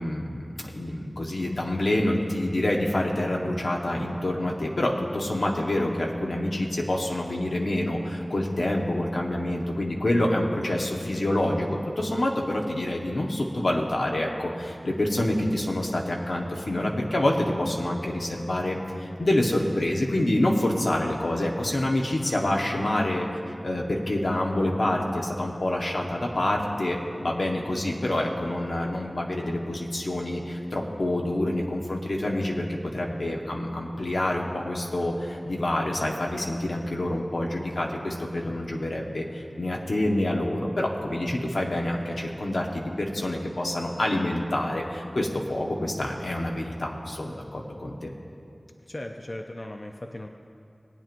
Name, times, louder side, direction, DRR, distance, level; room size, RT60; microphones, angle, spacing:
voice 1, 0.0-23.3 23.6-48.1, left 1 dB, 85° left, -1 dB, 1.1 m, -27 dB
voice 2, 48.8-50.3, left 1 dB, 50° left, 3 dB, 0.6 m, -37 dB
19.5 x 9.0 x 2.6 m, 2.5 s
wide cardioid pair, 40°, 0 cm